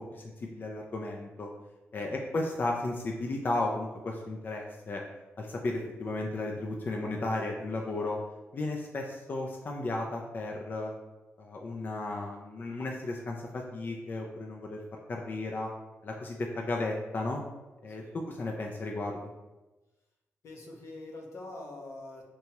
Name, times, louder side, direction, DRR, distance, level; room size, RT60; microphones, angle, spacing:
voice 1, 0.0-1.5 1.9-5.0 5.4-8.2 8.5-10.9 11.4-14.8 15.1-15.7 16.0-17.4 17.8-19.2, left 2 dB, 40° left, 0 dB, 0.3 m, -34 dB
voice 2, 20.4-22.2, left 2 dB, 75° left, 0 dB, 0.6 m, -44 dB
2.9 x 2.2 x 2.9 m, 1.1 s
cardioid pair, 75°, 5 cm